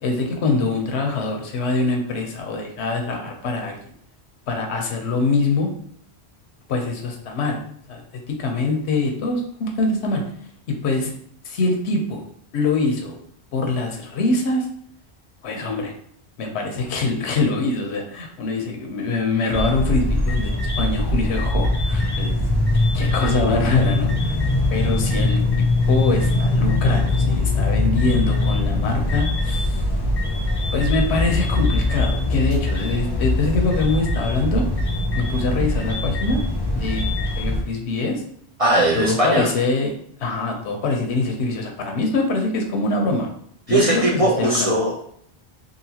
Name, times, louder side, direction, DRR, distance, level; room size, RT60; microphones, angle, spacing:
voice 1, 0.0-3.8 4.5-5.7 6.7-7.6 7.9-8.0 8.3-10.2 10.7-11.1 11.4-12.2 12.5-13.2 13.5-14.7 15.4-15.9 16.4-22.4 22.9-24.4 24.7-25.4 25.9-29.8 30.7-34.7 35.1-36.4 36.7-37.1 37.4-38.2 38.9-39.9 40.2-43.3 43.7-44.7, left 3 dB, 80° left, 2 dB, 0.9 m, -24 dB
sound 1, 19.5-37.6, left 2 dB, 40° left, 0.4 m, -21 dB
voice 2, 38.6-39.5 43.7-45.0, right 1 dB, 50° right, -3 dB, 0.4 m, -19 dB
2.8 x 2.6 x 2.8 m, 0.64 s
omnidirectional pair, 1.1 m